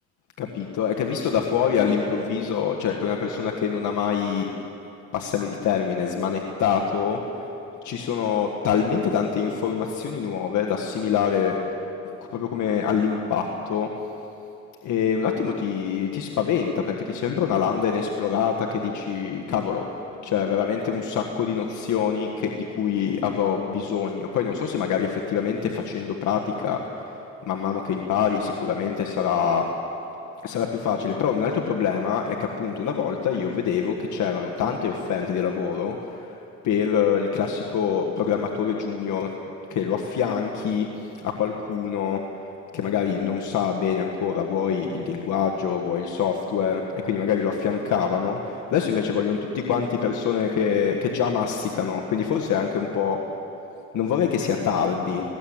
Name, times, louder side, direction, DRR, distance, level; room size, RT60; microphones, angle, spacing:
voice 1, 0.8-4.5 5.1-7.5 7.8-11.6 12.3-13.9 14.8-27.0 27.4-29.6 30.4-36.4 36.6-39.3 39.7-42.2 42.7-53.2 53.9-55.2, left 7 dB, 75° left, 1 dB, 1.6 m, -25 dB
19.5 x 16.5 x 8.8 m, 2.9 s
cardioid pair, 90°, 30 cm